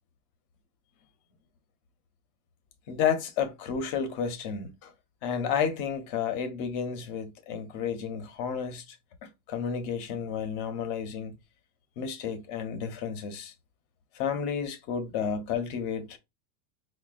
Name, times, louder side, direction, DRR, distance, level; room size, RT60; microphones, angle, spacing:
voice 1, 2.9-4.9 5.2-9.0 9.2-11.3 12.0-13.5 14.1-16.2, left 7 dB, 35° left, 0.5 m, -31 dB
5.4 x 2.1 x 2.4 m
supercardioid pair, 170°, 46 cm